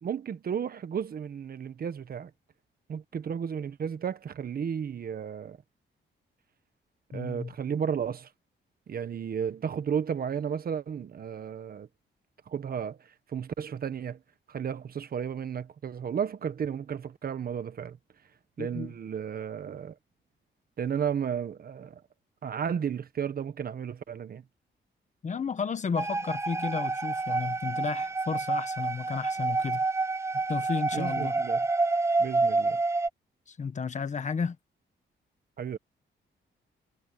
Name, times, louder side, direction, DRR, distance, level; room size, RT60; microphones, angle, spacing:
voice 1, 0.0-2.3 2.9-5.6 7.1-8.3 8.9-11.9 12.5-14.2 14.5-18.0 18.6-19.9 20.8-22.0 22.4-24.4 30.9-31.7 32.2-32.8 35.6-35.8, right 7 dB, 50° right, 1.2 m, -33 dB
voice 2, 7.1-7.5 18.6-18.9 25.2-29.8 30.5-31.4 33.5-34.6, left 6 dB, 35° left, 1.3 m, -33 dB
sound 1, 26.0-33.1, right 3 dB, 15° right, 0.5 m, -28 dB
wide cardioid pair, 145°, 20 cm